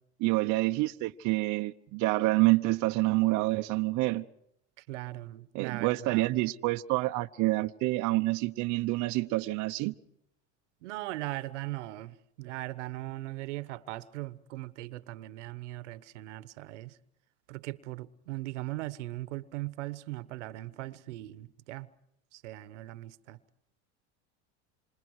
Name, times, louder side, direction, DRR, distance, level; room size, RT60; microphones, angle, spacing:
voice 1, 0.2-4.2 5.5-9.9, right 20 dB, 55° right, 0.9 m, -27 dB
voice 2, 4.8-6.3 10.8-17.0 17.5-21.9 22.3-23.4, right 18 dB, 85° right, 1.2 m, -39 dB
27.0 x 27.0 x 4.8 m
supercardioid pair, 105°, 35 cm